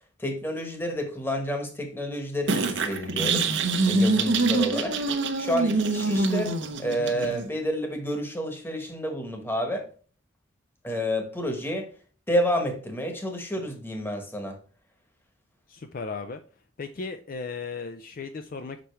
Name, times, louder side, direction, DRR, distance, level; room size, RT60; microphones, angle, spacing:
voice 1, 0.2-3.5 3.8-5.0 5.4-6.5 6.8-9.9 10.8-11.9 12.3-14.6, equal, 10° left, 1.2 m, -29 dB
sound 1, 2.5-7.5, right 3 dB, 65° right, 0.8 m, -25 dB
voice 2, 15.7-16.4 16.8-18.8, left 4 dB, 45° left, 0.4 m, -36 dB
5.6 x 5.1 x 4.5 m
head